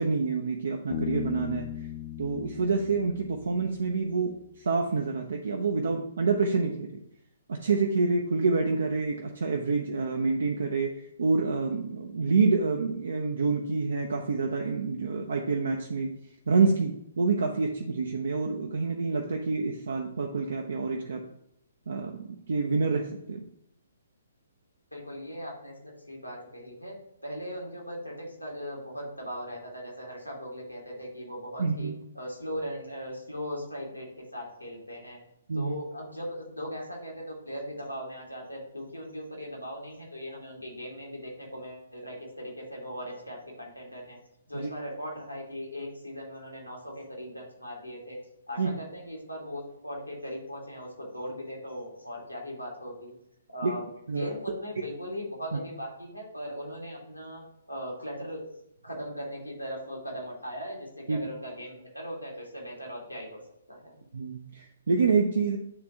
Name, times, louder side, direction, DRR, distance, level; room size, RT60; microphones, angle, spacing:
voice 1, 0.0-1.9 2.2-6.9 7.5-16.1 16.5-21.2 21.9-23.4 31.6-32.0 35.5-35.7 44.5-44.7 48.6-48.7 53.6-53.7 54.1-54.3 61.1-61.2 64.1-65.6, right 4 dB, 60° right, 2 dB, 0.6 m, -27 dB
Bass guitar, 0.9-4.4, left 11 dB, 40° left, 0.5 m, -38 dB
voice 2, 24.9-27.0 27.2-35.2 35.5-44.2 44.5-48.2 48.5-53.1 53.5-57.4 57.7-58.5 58.8-63.4 63.7-63.9, equal, 90° left, -2 dB, 2.0 m, -39 dB
9.7 x 3.4 x 2.9 m, 0.77 s
figure-of-eight pair, 125°, 0 cm